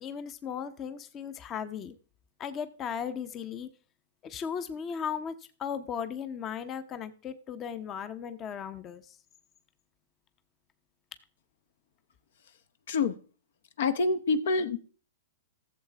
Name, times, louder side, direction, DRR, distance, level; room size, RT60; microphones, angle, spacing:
voice 1, 0.0-1.9 2.4-3.7 4.2-9.2, left 7 dB, 30° left, 0.7 m, -36 dB
voice 2, 13.8-14.8, left 3 dB, 70° left, 0.9 m, -26 dB
15.0 x 7.2 x 3.4 m
hypercardioid pair, 125°, 0 cm